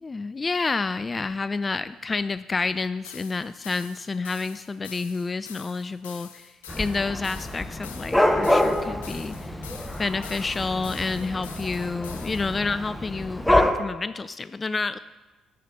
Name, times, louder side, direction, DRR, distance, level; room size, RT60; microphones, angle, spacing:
voice 1, 0.0-9.5 10.0-15.0, left 4 dB, 30° left, 14 dB, 0.3 m, -29 dB
sound 1, 3.0-12.6, left 8 dB, 85° left, 0.6 m, -45 dB
Dog / Cat, 6.7-13.7, left 1 dB, 10° left, 1.1 m, -26 dB
9.1 x 6.4 x 7.1 m, 1.2 s
hypercardioid pair, 45°, 0 cm